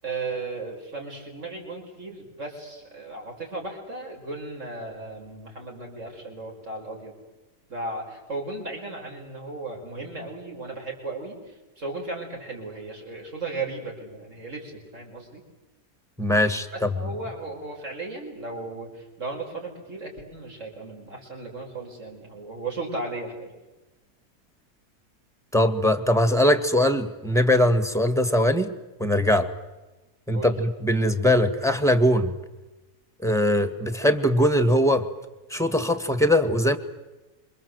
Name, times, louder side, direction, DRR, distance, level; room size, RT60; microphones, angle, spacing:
voice 1, 0.0-7.1 7.7-15.4 16.7-23.5 30.3-30.6, right 3 dB, 50° right, 1 dB, 5.9 m, -36 dB
voice 2, 16.2-16.9 25.5-28.7 29.0-29.5 30.3-32.3 33.2-35.1 35.5-36.8, left 1 dB, ahead, 10 dB, 1.8 m, -21 dB
27.0 x 25.5 x 8.0 m, 1.1 s
omnidirectional pair, 1.7 m